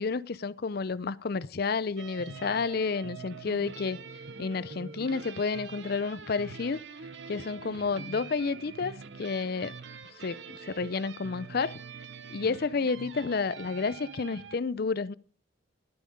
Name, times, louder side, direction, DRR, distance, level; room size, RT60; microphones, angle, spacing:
voice 1, 0.0-4.0 4.4-6.8 7.3-9.7 10.2-11.8 12.3-15.1, left 4 dB, 50° left, 0.5 m, -30 dB
sound 1, 2.0-14.6, right 5 dB, 60° right, 0.8 m, -45 dB
11.5 x 8.4 x 5.2 m
head